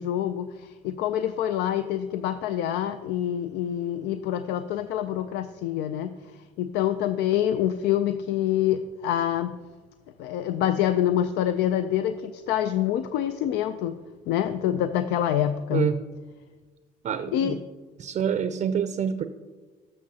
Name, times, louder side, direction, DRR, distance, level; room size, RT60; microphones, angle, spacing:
voice 1, 0.0-9.6 10.2-14.0 14.3-15.9 17.3-17.6, left 11 dB, 85° left, 10 dB, 0.4 m, -26 dB
voice 2, 17.0-17.6 18.0-19.2, right 7 dB, 40° right, 10 dB, 0.4 m, -26 dB
13.0 x 6.3 x 2.8 m, 1.4 s
cardioid pair, 110°, 17 cm